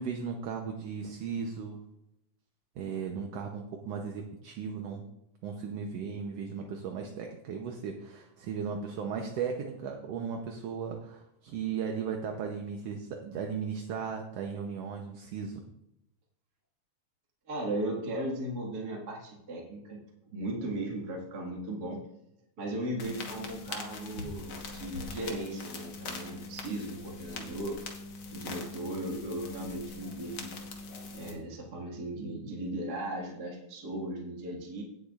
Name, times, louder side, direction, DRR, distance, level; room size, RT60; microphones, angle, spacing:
voice 1, 0.0-1.8 2.8-5.0 5.4-15.6, right 6 dB, 70° right, 3 dB, 1.7 m, -36 dB
voice 2, 17.5-20.0 20.3-22.0 22.6-27.8 28.3-30.5 31.1-34.8, right 1 dB, 35° right, -2 dB, 2.0 m, -37 dB
sound 1, 23.0-31.3, left 3 dB, 55° left, 1.7 m, -42 dB
17.0 x 8.2 x 2.5 m, 0.83 s
omnidirectional pair, 3.6 m